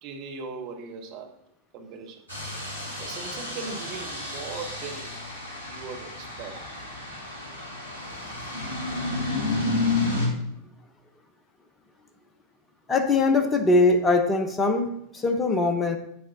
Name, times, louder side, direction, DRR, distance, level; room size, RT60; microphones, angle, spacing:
voice 1, 0.0-1.3 1.7-2.2 3.0-5.2 5.6-6.6, right 4 dB, 40° right, 1.2 m, -39 dB
sound 1, 2.3-10.3, left 2 dB, 90° right, 1.9 m, -31 dB
voice 2, 12.9-16.0, left 3 dB, 15° left, 1.0 m, -22 dB
9.1 x 8.4 x 2.9 m
figure-of-eight pair, 90°, 0 cm